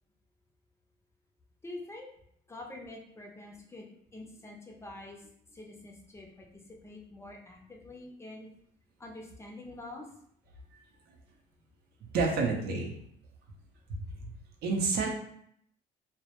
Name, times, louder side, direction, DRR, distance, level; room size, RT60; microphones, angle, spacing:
voice 1, 1.6-2.1 2.5-8.5 9.0-10.1, left 2 dB, 15° left, 0 dB, 0.4 m, -46 dB
voice 2, 12.1-12.9 13.9-14.3 14.6-15.1, right 4 dB, 75° right, 1 dB, 0.5 m, -29 dB
2.1 x 2.0 x 2.8 m, 0.69 s
cardioid pair, 110°, 17 cm